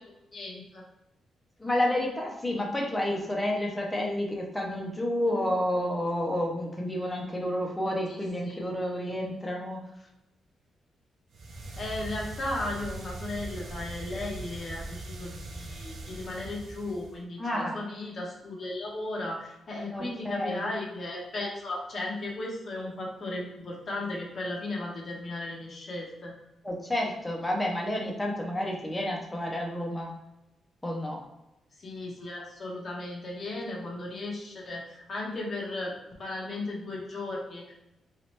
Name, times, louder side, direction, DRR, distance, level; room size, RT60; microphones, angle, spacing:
voice 1, 0.3-0.8 8.1-8.2 8.5-8.6 11.8-26.3 31.8-35.9 36.2-37.7, left 2 dB, 35° left, -2 dB, 0.8 m, -36 dB
voice 2, 1.6-9.8 17.4-17.8 19.9-20.6 26.6-30.1 30.8-31.2, left 1 dB, 5° left, -1 dB, 0.5 m, -30 dB
sound 1, 11.3-17.2, right 2 dB, 55° right, 0.5 m, -40 dB
3.0 x 2.8 x 3.2 m, 0.94 s
wide cardioid pair, 175°, 0 cm